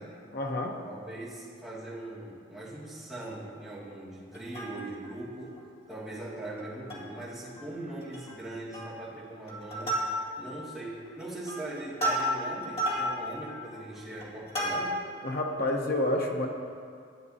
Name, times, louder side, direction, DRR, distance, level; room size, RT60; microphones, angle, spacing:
voice 1, 0.3-0.8 15.2-16.5, left 1 dB, 50° left, 2 dB, 0.9 m, -29 dB
voice 2, 0.8-5.6 5.9-10.0 10.4-15.0, right 1 dB, ahead, -11 dB, 2.1 m, -40 dB
Plucked string instrument, 4.3-5.1 5.6-5.7 5.9-6.1 6.6-7.2 7.6-7.7 8.0-8.4 8.7-9.1 9.5-10.5 11.1-15.2 15.7-15.8, equal, 30° left, 2.1 m, -32 dB
12.5 x 8.8 x 2.8 m, 2.4 s
head